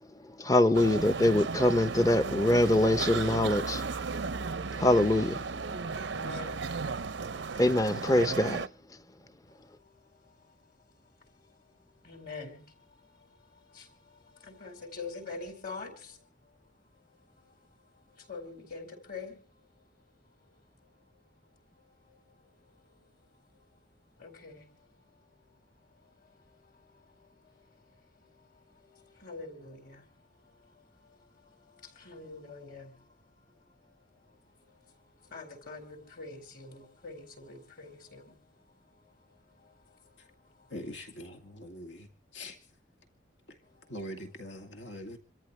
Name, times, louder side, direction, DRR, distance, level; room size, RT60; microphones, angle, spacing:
voice 1, 0.4-3.8 4.8-5.4 7.6-8.6, left 1 dB, 20° left, 0.7 m, -24 dB
sound 1, 0.7-8.7, right 4 dB, 80° right, 0.7 m, -35 dB
voice 2, 6.1-6.6 7.2-7.6 9.7-10.5 11.3-11.5 12.0-13.3 13.5-16.2 17.4-17.5 18.1-19.4 22.1-22.2 24.2-24.6 26.5-27.5 28.2-28.5 28.7-30.1 30.5-30.8 31.2-33.0 34.8-34.9 35.2-38.4 39.0-40.0 40.6-40.7 43.8-44.0, left 4 dB, 50° left, 5.0 m, -46 dB
voice 3, 40.7-42.1 42.3-42.6 43.9-45.2, equal, 75° left, 2.2 m, -42 dB
27.5 x 13.5 x 3.3 m
head